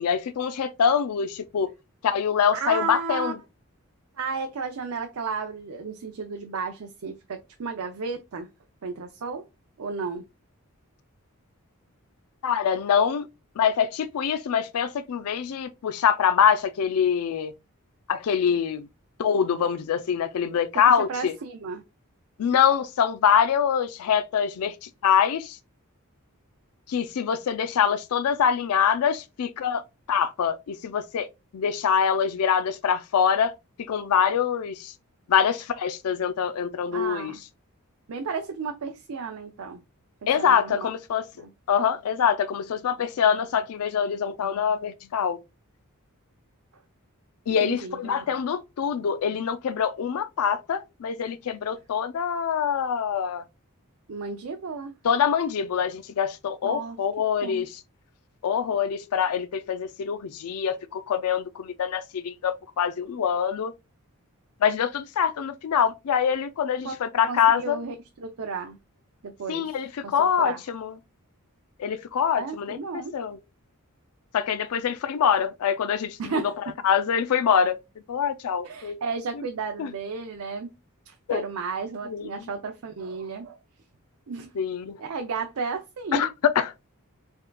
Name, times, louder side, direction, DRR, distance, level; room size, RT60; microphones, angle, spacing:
voice 1, 0.0-1.7 2.0-3.4 12.4-13.3 13.6-17.5 18.1-18.9 19.2-21.3 22.4-25.6 26.9-31.3 31.5-33.5 33.8-34.9 35.3-37.3 40.3-41.3 41.7-45.4 47.5-53.4 55.0-57.8 58.4-63.7 64.6-67.8 69.5-71.0 71.8-72.8 73.1-73.4 74.3-76.5 76.8-77.8 78.1-79.0 79.8-79.9 81.3-81.4 82.1-82.4 84.6-85.0 86.1-86.7, left 7 dB, 80° left, 0.4 m, -24 dB
voice 2, 2.5-3.3 4.2-8.5 8.8-9.4 9.8-10.2 20.9-21.8 36.9-37.4 38.1-39.8 40.4-40.9 41.4-41.5 47.6-48.1 54.1-54.9 56.6-57.0 57.4-57.6 66.8-67.0 67.3-68.8 69.2-69.8 70.0-70.6 72.4-73.1 76.2-76.7 78.6-80.7 81.1-83.6 84.3-84.5 85.0-86.3, right 4 dB, 70° right, 0.5 m, -33 dB
4.4 x 3.6 x 2.2 m
head